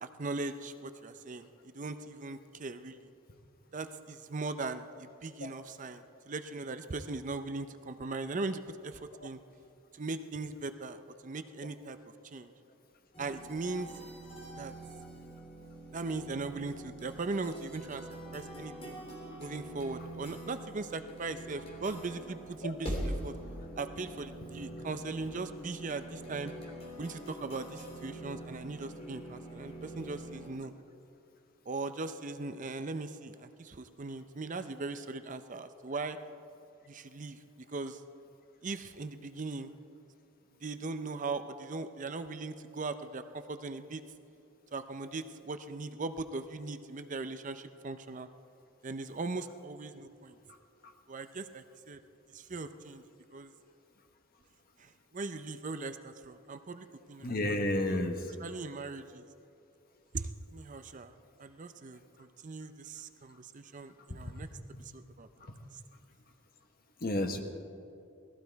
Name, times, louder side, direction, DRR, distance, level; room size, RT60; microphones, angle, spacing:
voice 1, 0.0-1.5 1.7-3.1 3.7-9.4 9.9-12.0 12.3-12.5 13.2-13.9 14.6-14.7 15.9-18.0 18.3-19.0 19.4-23.3 23.8-26.5 27.0-30.7 31.7-36.2 36.9-37.4 37.7-38.0 38.6-39.7 40.6-44.0 44.7-48.3 48.8-50.4 51.1-52.0 52.3-53.0 53.3-53.5 54.8-57.6 57.9-58.0 58.4-59.2 60.1-61.1 61.4-64.5 64.8-65.3, right 3 dB, 35° right, 10 dB, 0.5 m, -39 dB
sound 1, 13.1-30.5, right 1 dB, 30° left, 3.1 m, -44 dB
voice 2, 57.2-58.2 67.0-67.4, left 1 dB, 45° left, 5 dB, 1.2 m, -30 dB
19.5 x 15.0 x 4.6 m, 2.6 s
head